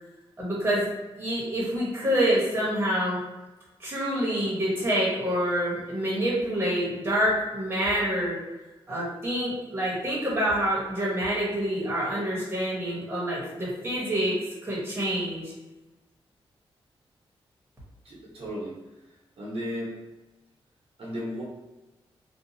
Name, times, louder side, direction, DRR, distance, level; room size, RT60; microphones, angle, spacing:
voice 1, 0.4-0.9 1.2-3.2 3.8-8.4 8.9-14.4 14.6-15.5, equal, 20° right, -7 dB, 1.1 m, -27 dB
voice 2, 18.0-18.8 19.4-20.0 21.0-21.4, equal, 75° right, -5 dB, 0.8 m, -34 dB
2.7 x 2.3 x 2.7 m, 1.1 s
wide cardioid pair, 145°, 10 cm